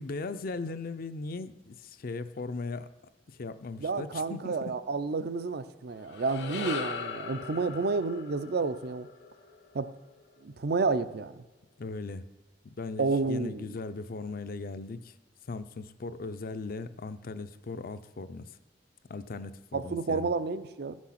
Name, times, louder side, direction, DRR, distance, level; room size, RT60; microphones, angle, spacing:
voice 1, 0.0-2.9 3.3-4.8 11.8-12.3 12.6-15.1 15.5-18.5 19.1-20.3, left 3 dB, 55° left, 12 dB, 0.5 m, -38 dB
voice 2, 3.8-9.1 9.7-9.9 10.4-11.4 13.0-13.7 19.7-21.0, right 4 dB, 60° right, 13 dB, 0.5 m, -30 dB
sound 1, 5.9-10.4, left 5 dB, 80° left, 1.0 m, -40 dB
14.0 x 6.2 x 5.8 m, 1.1 s
head